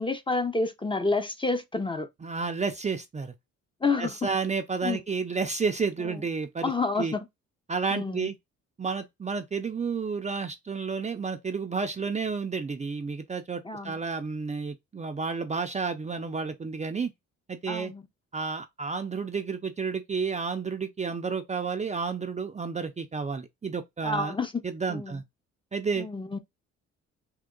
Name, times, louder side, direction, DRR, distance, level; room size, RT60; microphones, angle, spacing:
voice 1, 0.0-2.1 3.8-4.2 4.8-5.0 6.0-6.2 6.6-7.3 7.9-8.3 13.6-14.0 17.7-18.0 24.0-24.6 24.9-25.2 26.0-26.4, left 3 dB, 15° left, 0.7 m, -29 dB
voice 2, 2.2-3.3 4.0-6.7 7.0-7.1 7.7-8.3 8.8-17.1 17.5-17.9 18.3-24.3 24.6-25.2 25.7-26.1, right 5 dB, 25° right, 0.5 m, -31 dB
3.7 x 2.8 x 3.8 m
cardioid pair, 90°, 30 cm